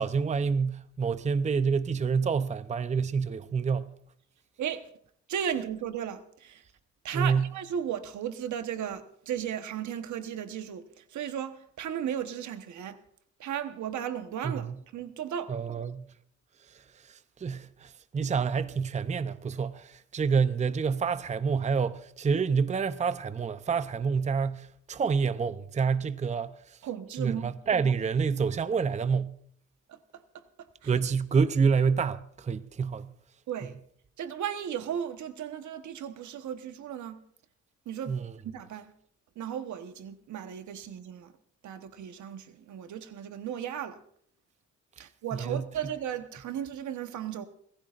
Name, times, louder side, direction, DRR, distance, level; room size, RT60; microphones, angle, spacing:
voice 1, 0.0-4.0 7.1-7.5 14.4-14.8 15.5-16.1 16.7-26.8 27.2-29.4 30.8-33.1 38.1-38.3 45.4-45.6, right 5 dB, 25° right, 0.6 m, -28 dB
voice 2, 4.6-4.9 5.3-6.6 7.0-13.0 13.4-15.5 18.2-18.3 26.8-27.5 29.9-30.9 33.5-33.8 34.2-37.2 37.8-38.9 39.3-41.3 41.6-44.0 45.0-47.5, right 9 dB, 70° right, 1.2 m, -35 dB
29.0 x 14.5 x 2.5 m
cardioid pair, 90°, 30 cm